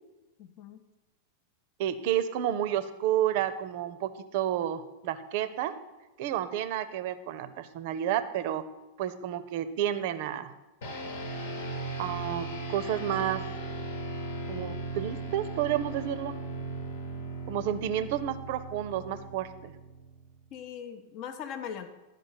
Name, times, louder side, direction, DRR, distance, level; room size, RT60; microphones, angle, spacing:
voice 1, 0.4-0.8 20.5-21.9, left 8 dB, 40° left, 8 dB, 0.7 m, -40 dB
voice 2, 1.8-5.8 6.2-8.6 9.0-10.5 12.0-13.4 14.5-16.3 17.5-19.7, right 11 dB, 50° right, 12 dB, 0.6 m, -30 dB
sound 1, 10.8-20.4, right 2 dB, 60° left, 1.1 m, -38 dB
11.5 x 5.2 x 5.6 m, 1.1 s
figure-of-eight pair, 90°, 0 cm